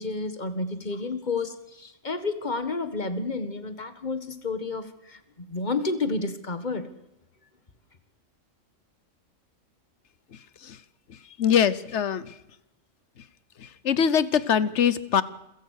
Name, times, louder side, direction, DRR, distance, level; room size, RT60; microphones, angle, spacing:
voice 1, 0.0-6.9, left 3 dB, 35° left, 10 dB, 1.8 m, -30 dB
voice 2, 11.4-12.3 13.6-15.2, left 8 dB, 65° left, 17 dB, 1.2 m, -23 dB
27.5 x 16.0 x 6.5 m, 0.90 s
omnidirectional pair, 1.3 m